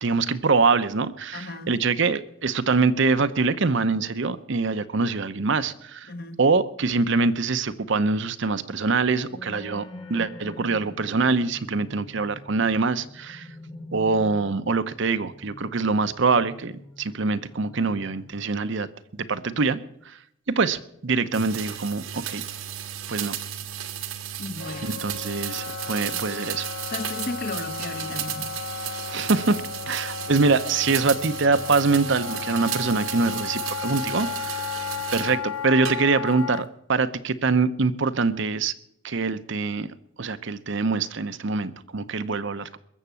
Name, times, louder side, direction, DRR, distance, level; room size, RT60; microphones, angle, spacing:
voice 1, 0.0-6.1 6.4-13.5 13.9-16.7 17.0-18.9 19.1-19.8 20.1-20.2 20.5-22.4 23.1-23.3 24.8-26.7 29.1-34.7 35.1-38.7 39.0-39.9 40.2-42.8, right 4 dB, 60° right, 12 dB, 0.7 m, -24 dB
voice 2, 1.3-1.7 6.1-6.4 24.4-25.1 26.9-28.5, left 2 dB, 45° left, 9 dB, 1.2 m, -34 dB
sound 1, 9.3-18.6, left 1 dB, 25° left, 1.3 m, -45 dB
sound 2, 21.3-35.4 35.9-36.4, right 10 dB, 85° right, 1.5 m, -34 dB
Wind instrument woodwind instrument, 24.6-36.7, left 7 dB, 75° left, 0.5 m, -34 dB
21.5 x 7.3 x 6.9 m, 0.74 s
head